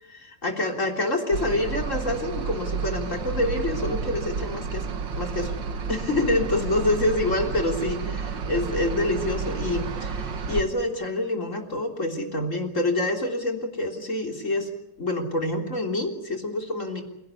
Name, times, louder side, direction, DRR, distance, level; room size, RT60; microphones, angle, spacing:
voice 1, 0.1-4.9 5.1-5.5 5.9-14.7 15.0-17.0, left 2 dB, 40° left, 3 dB, 3.8 m, -27 dB
sound 1, 1.3-10.6, right 5 dB, 85° right, 2.2 m, -31 dB
28.0 x 17.5 x 8.4 m, 0.83 s
omnidirectional pair, 1.9 m